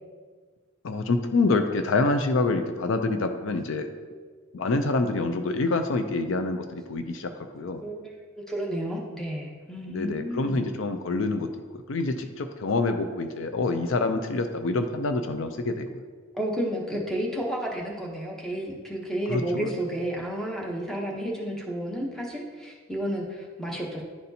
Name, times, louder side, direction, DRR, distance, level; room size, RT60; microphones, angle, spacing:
voice 1, 0.8-3.9 4.5-7.8 9.9-11.5 11.7-16.0 19.3-19.7, left 3 dB, 65° left, 7 dB, 0.4 m, -26 dB
voice 2, 7.8-8.1 8.5-10.6 16.4-24.0, right 1 dB, ahead, -2 dB, 0.8 m, -31 dB
10.5 x 4.2 x 2.7 m, 1.6 s
head